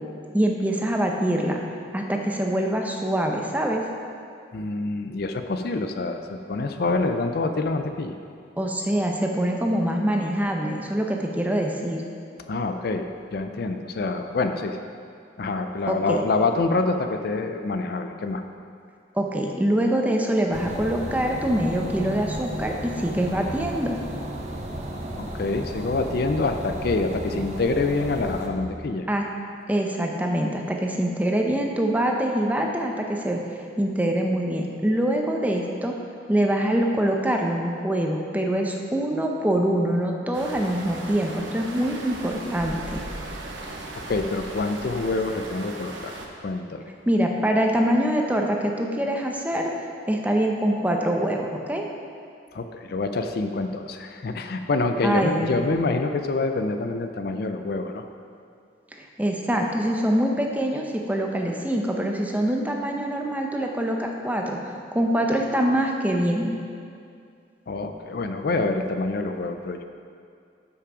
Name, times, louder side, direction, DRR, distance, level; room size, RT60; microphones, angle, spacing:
voice 1, 0.3-1.6 1.9-3.8 8.6-12.0 15.9-16.2 19.1-24.0 29.1-29.3 29.7-33.4 33.8-35.9 36.3-43.0 47.1-49.7 50.1-51.8 55.0-55.5 58.9-66.5, right 1 dB, 10° right, 1 dB, 0.6 m, -24 dB
voice 2, 4.5-8.2 12.5-13.0 13.3-14.8 15.4-18.4 25.2-29.1 43.9-46.9 52.5-58.0 67.7-69.8, left 3 dB, 55° left, 7 dB, 0.4 m, -26 dB
sound 1, 20.5-28.5, right 1 dB, 35° right, 0.8 m, -34 dB
sound 2, 40.3-46.3, right 2 dB, 80° right, 0.9 m, -37 dB
8.3 x 5.8 x 4.9 m, 2.3 s
head